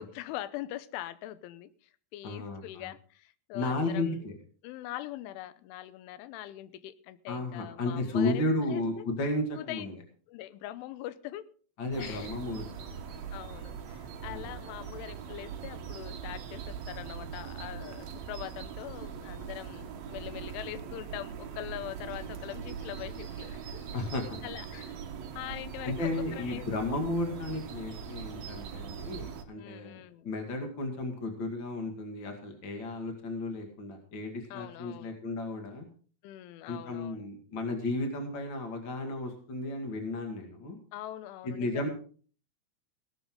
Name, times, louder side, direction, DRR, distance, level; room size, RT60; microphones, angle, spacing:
voice 1, 0.0-4.3 4.6-9.0 9.5-9.9 10.3-11.5 12.0-12.4 13.3-24.1 24.4-24.9 25.4-26.7 29.6-30.3 34.5-35.2 36.2-37.3 40.9-41.9, left 14 dB, 90° left, 15 dB, 3.3 m, -42 dB
voice 2, 2.2-2.9 3.5-4.3 7.3-9.9 11.8-12.9 14.3-14.5 23.9-24.4 25.8-35.9 36.6-40.8 41.4-41.9, left 2 dB, 45° left, 3 dB, 1.5 m, -34 dB
sound 1, 11.9-29.4, right 7 dB, 90° right, 1.5 m, -41 dB
17.5 x 12.5 x 3.8 m, 0.43 s
omnidirectional pair, 5.4 m